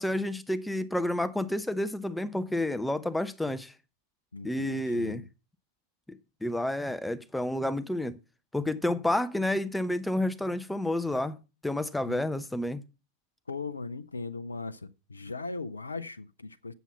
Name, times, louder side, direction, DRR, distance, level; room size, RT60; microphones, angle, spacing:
voice 1, 0.0-3.7 4.4-5.2 6.1-8.2 8.5-11.4 11.6-12.8, left 1 dB, 5° left, 0.6 m, -30 dB
voice 2, 4.3-5.2 12.0-12.2 13.5-16.7, left 3 dB, 80° left, 0.5 m, -38 dB
8.1 x 7.4 x 5.6 m
figure-of-eight pair, 90°, 0 cm